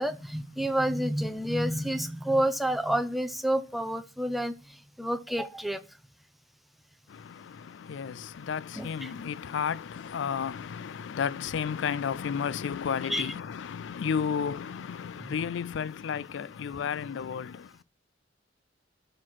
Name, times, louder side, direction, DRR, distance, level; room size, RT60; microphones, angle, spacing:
voice 1, 0.0-4.5 5.0-5.8 8.8-9.1 13.1-13.3 15.3-15.4, right 1 dB, ahead, 0.6 m, -29 dB
voice 2, 7.1-17.7, left 7 dB, 70° left, 0.4 m, -33 dB
12.0 x 4.3 x 6.2 m
head